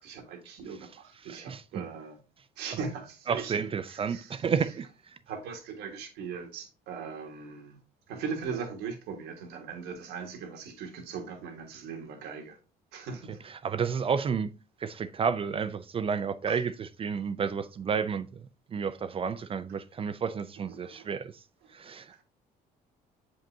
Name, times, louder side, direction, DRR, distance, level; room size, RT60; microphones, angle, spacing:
voice 1, 0.0-2.2 2.6-3.5 3.9-4.4 5.3-7.8 8.1-12.6 12.9-13.4 16.5-16.6 20.7-21.1 22.1-22.2, right 5 dB, 85° right, 1.6 m, -39 dB
voice 2, 1.2-1.9 3.3-5.2 13.4-14.5 14.8-18.3 18.7-21.4 21.7-22.2, right 6 dB, 35° right, 0.4 m, -31 dB
7.4 x 5.2 x 2.7 m
cardioid pair, 110°, 17 cm